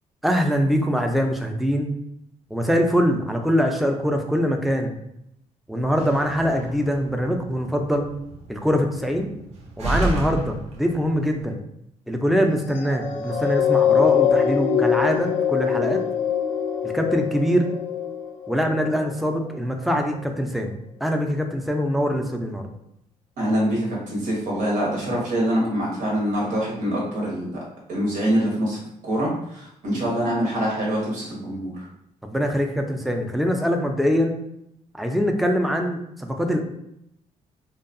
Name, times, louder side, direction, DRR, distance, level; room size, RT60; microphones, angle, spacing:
voice 1, 0.2-1.9 2.5-4.9 5.7-8.1 8.5-9.3 9.8-11.6 12.1-16.0 16.8-17.7 18.5-20.7 21.0-22.6 32.2-34.4 35.0-36.6, equal, ahead, 4 dB, 0.3 m, -23 dB
Slam, 5.8-11.4, right 2 dB, 55° right, 0.6 m, -32 dB
sound 1, 12.6-19.3 19.9-20.1, left 8 dB, 85° left, 0.4 m, -23 dB
voice 2, 23.4-27.6 27.9-28.8 29.0-31.9, equal, 85° right, -3 dB, 1.0 m, -24 dB
2.6 x 2.3 x 2.5 m, 0.77 s
cardioid pair, 100°, 13 cm